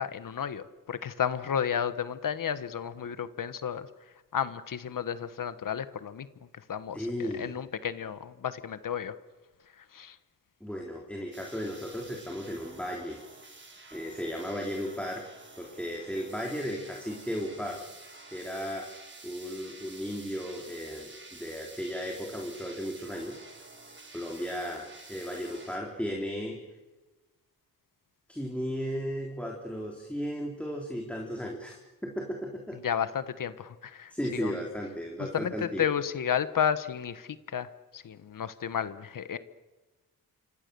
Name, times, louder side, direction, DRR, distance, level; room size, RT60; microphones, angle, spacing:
voice 1, 0.0-3.9 4.3-6.3 6.7-9.1 9.9-10.2 32.8-34.6 35.3-39.4, left 8 dB, 60° left, 13 dB, 1.3 m, -32 dB
voice 2, 6.9-7.5 10.6-13.2 13.9-15.3 15.6-17.8 18.3-18.9 19.2-23.4 24.1-26.6 28.3-32.8 34.1-35.9, equal, 5° left, 0 dB, 3.5 m, -35 dB
sound 1, 11.3-25.8, right 3 dB, 30° right, 6.5 m, -50 dB
27.5 x 26.0 x 6.9 m, 1.2 s
wide cardioid pair, 120°, 37 cm